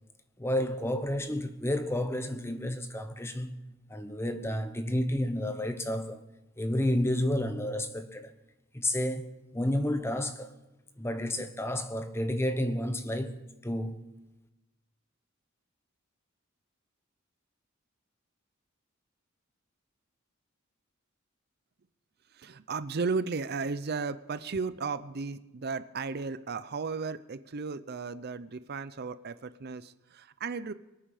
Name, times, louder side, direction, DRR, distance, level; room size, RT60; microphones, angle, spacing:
voice 1, 0.4-3.6 3.9-6.2 6.6-8.3 8.7-10.5 11.0-14.0, left 1 dB, 10° left, 1.1 m, -31 dB
voice 2, 22.3-30.7, right 4 dB, 50° right, 0.6 m, -35 dB
25.0 x 9.1 x 4.9 m
head